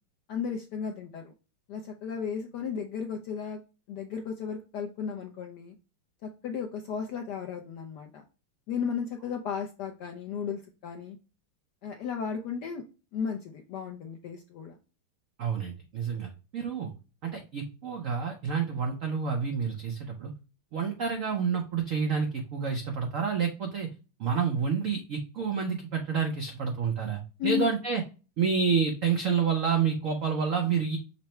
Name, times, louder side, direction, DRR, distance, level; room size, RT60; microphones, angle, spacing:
voice 1, 0.3-1.3 1.7-3.6 3.9-5.8 6.2-8.2 8.7-11.2 11.8-12.8 13.1-14.8 27.4-27.7, left 7 dB, 75° left, 3 dB, 0.9 m, -34 dB
voice 2, 15.4-16.9 17.2-20.3 20.7-23.9 24.2-28.0 28.4-31.0, right 6 dB, 80° right, 3 dB, 0.7 m, -29 dB
5.7 x 2.1 x 4.3 m, 0.32 s
omnidirectional pair, 2.3 m